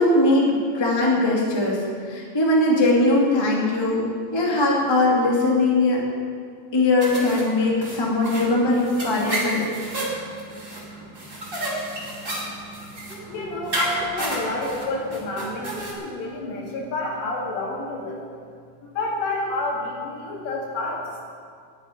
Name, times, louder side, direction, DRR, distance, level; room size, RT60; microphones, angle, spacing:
voice 1, 0.0-6.0 6.7-9.6, left 2 dB, 15° left, -3 dB, 1.0 m, -20 dB
sound 1, 7.0-15.9, right 1 dB, 20° right, 1.8 m, -31 dB
voice 2, 13.3-18.2 18.8-21.2, left 2 dB, 80° left, -2 dB, 4.4 m, -29 dB
10.0 x 10.0 x 9.9 m, 2.2 s
omnidirectional pair, 5.0 m